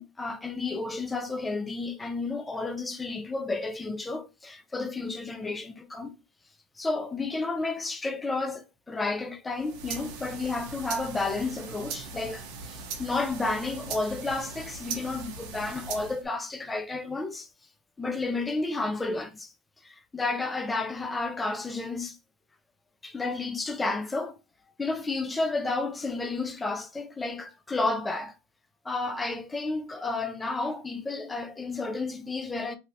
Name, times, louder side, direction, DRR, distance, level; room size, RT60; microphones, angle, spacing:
voice 1, 0.0-6.2 6.8-17.5 18.0-19.5 19.8-22.2 23.0-24.4 24.8-28.3 28.8-32.8, left 3 dB, 10° left, 0.3 m, -31 dB
sound 1, 9.5-16.3, right 5 dB, 40° right, 0.8 m, -39 dB
3.1 x 2.8 x 2.6 m
supercardioid pair, 160°, 0 cm